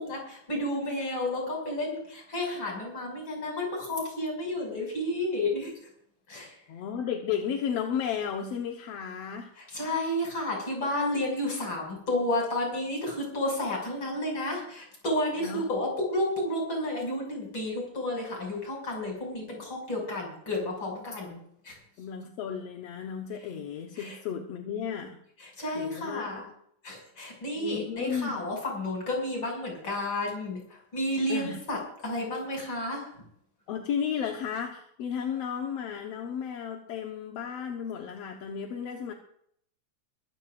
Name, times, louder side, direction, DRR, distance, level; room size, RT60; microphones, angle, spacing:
voice 1, 0.0-5.7 6.3-6.5 9.7-21.4 21.7-21.8 24.0-24.2 25.6-26.5 26.8-30.6 30.9-31.8 32.0-33.1, left 1 dB, 35° left, 0 dB, 6.9 m, -31 dB
voice 2, 6.7-9.5 15.4-15.7 22.0-25.2 25.8-26.4 27.6-28.4 31.3-31.6 33.7-39.1, left 7 dB, 60° left, 2 dB, 2.0 m, -33 dB
23.0 x 15.5 x 2.5 m, 0.67 s
omnidirectional pair, 3.5 m